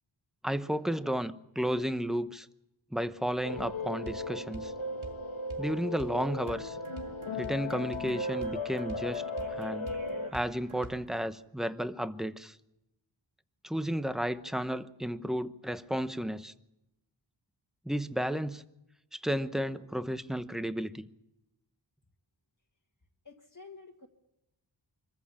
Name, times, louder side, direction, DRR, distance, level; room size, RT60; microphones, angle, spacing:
voice 1, 0.4-2.5 2.9-4.7 5.6-6.8 7.3-9.2 9.5-9.9 10.3-12.6 13.6-16.5 17.8-18.6 19.1-21.1, equal, ahead, 11 dB, 0.9 m, -33 dB
sound 1, 3.4-10.3, left 2 dB, 80° left, 1.4 m, -36 dB
sound 2, 3.6-3.7 4.1-4.2 4.5-4.7 5.0-5.2 5.5-5.7 6.0-6.2 6.5-11.1, right 2 dB, 85° right, 2.2 m, -47 dB
voice 2, 23.2-24.1, left 4 dB, 40° left, -1 dB, 1.8 m, -50 dB
25.0 x 14.5 x 8.6 m, 0.93 s
wide cardioid pair, 55°, 47 cm